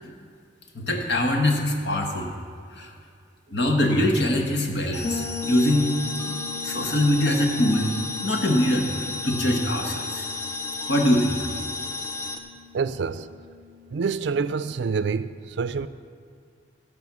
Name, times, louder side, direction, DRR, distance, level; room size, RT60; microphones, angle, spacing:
voice 1, 0.7-2.3 2.7-2.9 3.5-5.9 6.3-6.4 6.6-7.9 8.2-10.2 10.9-11.3, left 1 dB, 65° left, 2 dB, 1.4 m, -23 dB
sound 1, 4.9-12.4, left 3 dB, 15° left, 0.6 m, -33 dB
Bass guitar, 5.0-14.7, left 4 dB, 35° left, 1.5 m, -40 dB
voice 2, 12.7-13.3 13.9-15.9, right 5 dB, 70° right, 14 dB, 0.4 m, -27 dB
16.5 x 5.5 x 6.1 m, 2.2 s
head